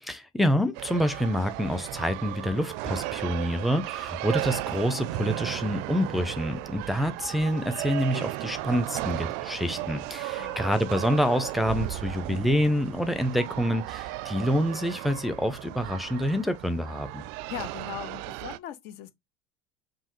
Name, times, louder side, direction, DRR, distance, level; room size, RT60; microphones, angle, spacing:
voice 1, 0.0-17.2, equal, ahead, 0.6 m, -27 dB
sound 1, 0.8-18.6, right 17 dB, 60° right, 0.4 m, -35 dB
voice 2, 10.3-10.7 17.5-19.1, left 11 dB, 60° left, 0.8 m, -39 dB
5.4 x 2.6 x 3.1 m
hypercardioid pair, 85°, 20 cm